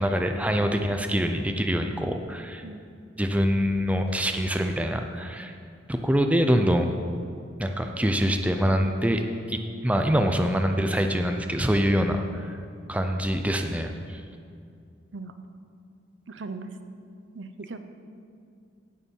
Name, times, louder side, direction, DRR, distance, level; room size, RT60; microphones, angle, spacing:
voice 1, 0.0-2.6 3.2-5.6 5.9-6.9 7.6-9.2 9.5-12.5 12.9-14.2, equal, 5° right, 5 dB, 0.6 m, -25 dB
voice 2, 16.3-16.7 17.3-17.8, right 3 dB, 80° right, 8 dB, 0.8 m, -38 dB
16.0 x 6.7 x 5.5 m, 2.4 s
head